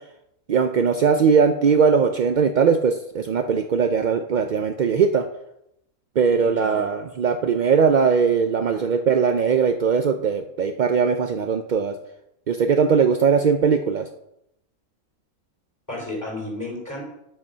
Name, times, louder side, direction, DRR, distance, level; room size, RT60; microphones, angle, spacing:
voice 1, 0.5-5.3 6.2-12.0 12.5-14.1, right 6 dB, 65° right, 7 dB, 0.4 m, -20 dB
voice 2, 6.4-6.8 8.7-8.8 15.9-17.0, left 2 dB, 10° left, -4 dB, 4.8 m, -32 dB
9.5 x 7.5 x 5.5 m, 0.82 s
omnidirectional pair, 1.4 m